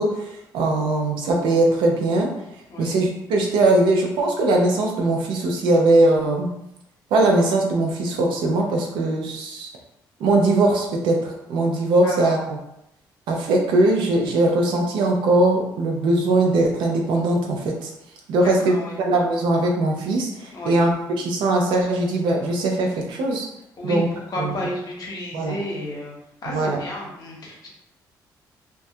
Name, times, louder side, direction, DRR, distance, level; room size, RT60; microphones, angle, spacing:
voice 1, 0.0-2.3 2.8-6.5 7.1-9.7 10.2-12.6 13.3-17.9 18.3-23.5 23.8-24.1 24.4-24.5 25.3-25.6 26.5-26.8, right 2 dB, 85° right, 1 dB, 0.5 m, -20 dB
voice 2, 12.0-12.3 18.4-19.0 20.5-20.8 23.8-26.2 26.4-27.7, left 1 dB, 55° left, -2 dB, 0.8 m, -32 dB
2.2 x 2.1 x 2.6 m, 0.83 s
cardioid pair, 70°, 8 cm